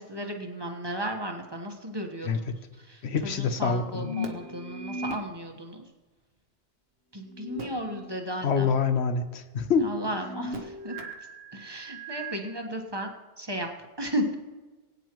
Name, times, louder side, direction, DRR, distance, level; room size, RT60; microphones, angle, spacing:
voice 1, 0.0-2.5 2.9-5.8 7.1-8.7 9.8-10.9 11.5-13.1 13.4-13.7 14.0-14.3, equal, 20° right, 2 dB, 1.2 m, -34 dB
voice 2, 3.0-4.2 8.4-9.9, left 5 dB, 65° left, 9 dB, 1.0 m, -26 dB
sound 1, 3.9-5.2 7.3-8.2 8.6-8.7 10.1-12.4, equal, 55° right, 1.3 m, -37 dB
19.5 x 9.1 x 3.0 m, 1.3 s
omnidirectional pair, 1.2 m